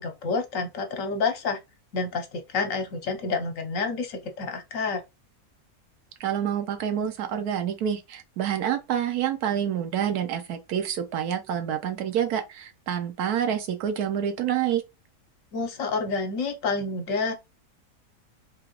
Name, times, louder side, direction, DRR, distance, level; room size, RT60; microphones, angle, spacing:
voice 1, 0.0-1.6 1.9-5.0 15.5-17.3, left 4 dB, 65° left, 1.1 m, -29 dB
voice 2, 6.2-14.8, right 9 dB, 85° right, 1.3 m, -27 dB
3.7 x 2.9 x 2.9 m
omnidirectional pair, 1.6 m